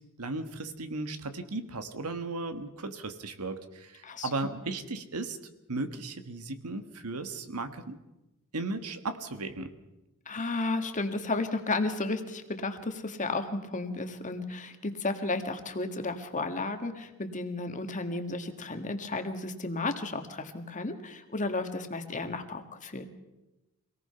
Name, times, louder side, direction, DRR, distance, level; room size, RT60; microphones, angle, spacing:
voice 1, 0.2-5.4 5.7-8.0 8.5-9.7, right 3 dB, 85° right, 9 dB, 1.6 m, -36 dB
voice 2, 10.3-23.1, left 3 dB, 35° left, 7 dB, 1.7 m, -33 dB
25.0 x 18.0 x 5.8 m, 0.99 s
head